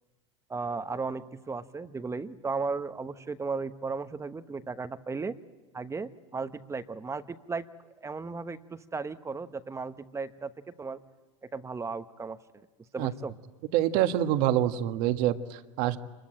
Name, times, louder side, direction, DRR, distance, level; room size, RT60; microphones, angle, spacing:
voice 1, 0.5-5.4 5.7-10.5 10.8-11.0 11.5-12.4 12.9-13.3, right 4 dB, 15° right, 11 dB, 1.1 m, -35 dB
voice 2, 13.7-16.0, right 12 dB, 60° right, 9 dB, 1.6 m, -26 dB
26.5 x 21.5 x 8.9 m, 1.1 s
hypercardioid pair, 100°, 17 cm